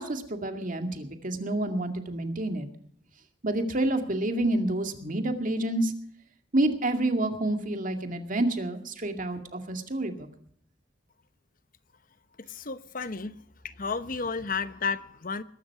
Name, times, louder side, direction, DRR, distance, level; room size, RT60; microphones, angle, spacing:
voice 1, 0.0-2.7 3.4-5.9 6.5-10.3, right 1 dB, 45° right, 2.2 m, -28 dB
voice 2, 12.4-13.4 13.6-15.4, left 5 dB, 50° left, 0.9 m, -32 dB
21.5 x 12.0 x 4.8 m
head